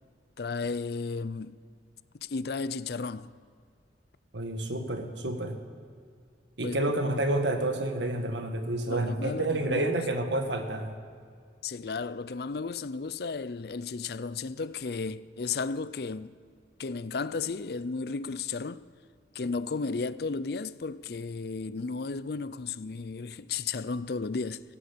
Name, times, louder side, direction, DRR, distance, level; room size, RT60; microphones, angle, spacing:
voice 1, 0.4-1.5 2.1-3.3 6.6-6.9 8.9-10.0 11.6-16.3 16.8-18.8 19.3-24.8, left 4 dB, 60° left, 0.5 m, -34 dB
voice 2, 4.3-5.6 6.6-10.9, right 1 dB, 90° right, 1.7 m, -29 dB
15.5 x 10.0 x 8.6 m
head